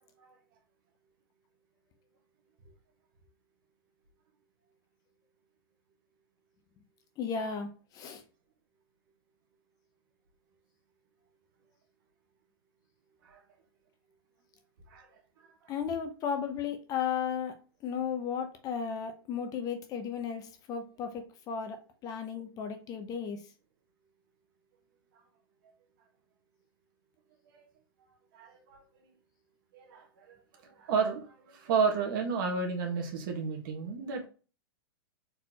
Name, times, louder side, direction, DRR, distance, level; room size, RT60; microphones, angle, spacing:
voice 1, 7.2-8.2 15.7-17.6 17.8-23.4, left 7 dB, 30° left, 6 dB, 0.8 m, -35 dB
voice 2, 28.3-28.8 29.7-30.4 30.6-34.3, right 5 dB, 60° right, 3 dB, 1.6 m, -32 dB
4.4 x 4.0 x 3.0 m, 0.35 s
hypercardioid pair, 140°, 13 cm